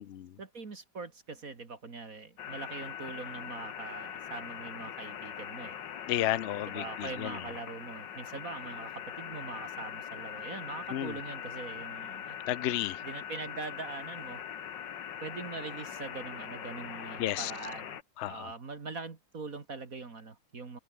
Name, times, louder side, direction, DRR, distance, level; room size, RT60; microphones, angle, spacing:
voice 1, 0.4-5.8 6.7-12.4 13.0-14.4 15.2-18.0 18.2-20.8, right 4 dB, 50° right, 2.6 m, -42 dB
sound 1, 2.4-18.0, left 9 dB, 75° left, 2.0 m, -42 dB
voice 2, 6.1-7.4 10.9-11.1 12.5-13.0 17.2-17.5 18.2-18.5, left 13 dB, 60° left, 0.7 m, -32 dB
omnidirectional pair, 2.0 m